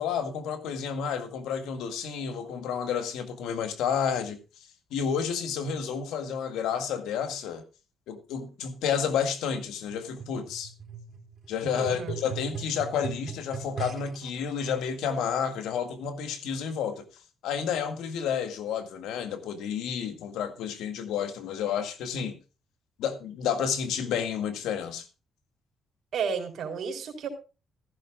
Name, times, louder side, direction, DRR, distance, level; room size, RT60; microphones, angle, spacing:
voice 1, 0.0-4.4 4.9-7.6 8.1-10.7 11.5-17.1 17.4-22.4 23.0-25.1, left 7 dB, 90° left, 1.9 m, -30 dB
sound 1, 9.9-14.3 15.1-15.2, right 5 dB, 45° right, 3.7 m, -39 dB
voice 2, 11.7-12.1 26.1-27.3, right 6 dB, 65° right, 4.0 m, -32 dB
15.0 x 13.5 x 2.4 m
cardioid pair, 90°, 0 cm